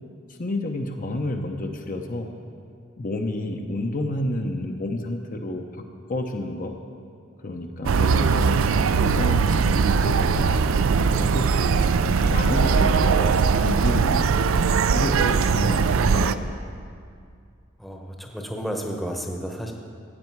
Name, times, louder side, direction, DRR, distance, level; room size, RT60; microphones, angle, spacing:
voice 1, 0.4-2.3 3.0-5.6 6.1-6.8 7.4-8.6 9.0-10.5 11.0-14.5 14.9-16.4, left 1 dB, 40° left, 3 dB, 0.7 m, -30 dB
sound 1, 7.8-16.3, right 5 dB, 80° right, 0.4 m, -20 dB
voice 2, 17.8-19.7, equal, ahead, 1 dB, 0.9 m, -32 dB
15.0 x 8.8 x 4.6 m, 2.3 s
head